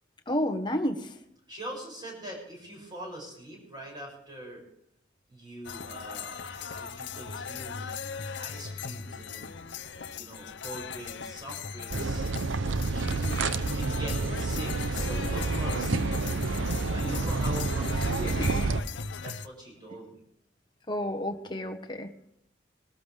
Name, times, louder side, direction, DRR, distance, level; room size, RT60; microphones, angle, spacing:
voice 1, 0.3-1.1 17.0-17.2 18.2-18.7 20.9-22.1, left 1 dB, 25° left, 5 dB, 1.3 m, -31 dB
voice 2, 1.5-4.6 5.3-7.9 8.4-9.6 9.8-12.2 12.8-16.6 16.9-18.8 19.2-20.2, right 1 dB, 20° right, 0 dB, 6.7 m, -43 dB
sound 1, 5.6-19.5, left 6 dB, 60° left, 0.7 m, -39 dB
sound 2, 11.9-18.8, right 3 dB, 75° right, 0.7 m, -29 dB
22.5 x 13.0 x 3.4 m, 0.72 s
head